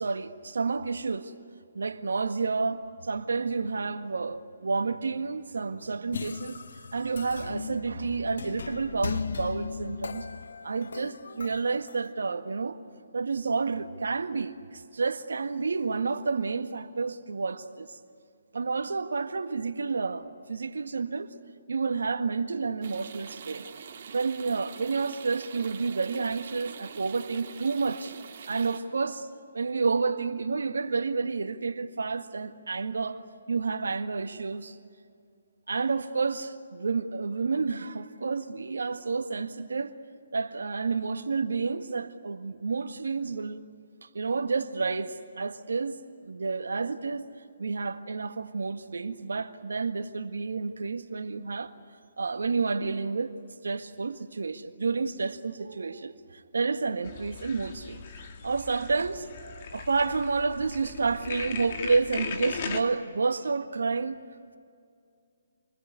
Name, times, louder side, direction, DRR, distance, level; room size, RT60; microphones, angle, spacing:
voice 1, 0.0-1.3 1.7-10.3 10.6-12.8 13.1-18.0 18.5-21.3 21.7-23.7 24.1-28.1 28.5-29.3 29.5-33.2 33.5-34.8 35.7-39.9 40.3-43.6 44.1-46.0 46.2-47.2 47.6-51.7 52.2-53.3 53.6-58.0 58.4-64.2, right 4 dB, 75° right, 1.7 m, -30 dB
sound 1, 6.1-12.1, left 5 dB, 65° left, 0.7 m, -37 dB
sound 2, 22.8-28.8, right 6 dB, 50° right, 3.1 m, -44 dB
sound 3, 57.0-62.8, left 6 dB, 45° left, 2.7 m, -39 dB
28.0 x 21.0 x 9.6 m
figure-of-eight pair, 145°, 0 cm